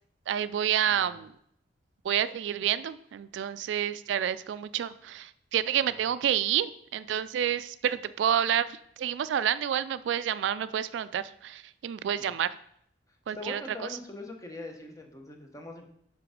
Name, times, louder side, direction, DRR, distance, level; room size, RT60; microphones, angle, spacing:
voice 1, 0.3-1.3 2.0-12.5 13.3-13.6, right 9 dB, 85° right, 15 dB, 0.3 m, -29 dB
voice 2, 0.9-1.2 5.9-6.1 12.2-12.4 13.4-15.9, left 2 dB, 20° left, 3 dB, 0.9 m, -42 dB
5.9 x 4.8 x 5.0 m, 0.70 s
head